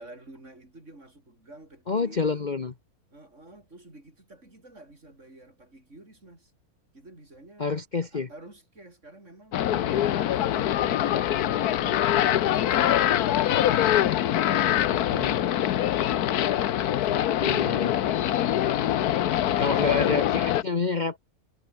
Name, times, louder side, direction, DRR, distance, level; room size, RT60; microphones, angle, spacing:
voice 1, 0.0-2.6 3.1-6.6 6.9-7.8 8.0-9.6 10.3-18.2 19.4-20.3 20.5-20.9, right 2 dB, 50° right, 6.2 m, -50 dB
voice 2, 1.9-2.7 7.6-8.3 9.7-10.1 15.1-15.4 17.4-18.0 19.6-21.2, left 4 dB, 35° left, 1.0 m, -28 dB
sound 1, 9.5-20.6, left 11 dB, 80° left, 1.3 m, -24 dB
omnidirectional pair, 1.6 m